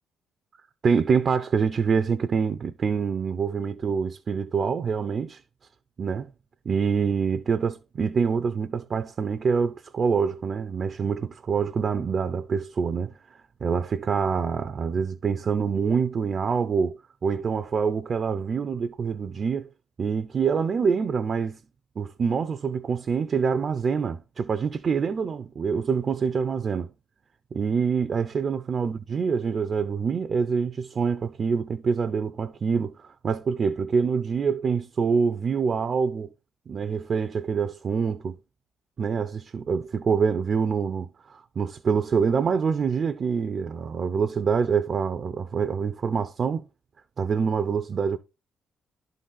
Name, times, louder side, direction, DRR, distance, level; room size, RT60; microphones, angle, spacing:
voice 1, 0.8-5.4 6.0-6.3 6.7-13.1 13.6-19.7 20.0-21.6 22.0-26.9 27.5-36.3 36.7-38.4 39.0-46.7 47.2-48.2, right 6 dB, 45° right, 0.5 m, -26 dB
11.0 x 3.9 x 3.9 m
cardioid pair, 90°, 0 cm